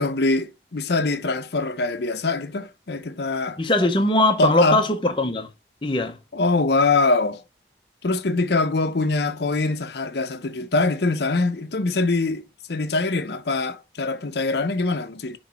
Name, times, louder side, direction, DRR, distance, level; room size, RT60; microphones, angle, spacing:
voice 1, 0.0-3.6 4.4-4.8 6.3-7.4 8.0-12.4 12.7-15.4, left 3 dB, 70° left, 0.7 m, -23 dB
voice 2, 3.6-5.5 5.8-6.2, left 2 dB, 30° left, 0.8 m, -20 dB
8.4 x 3.2 x 4.0 m
head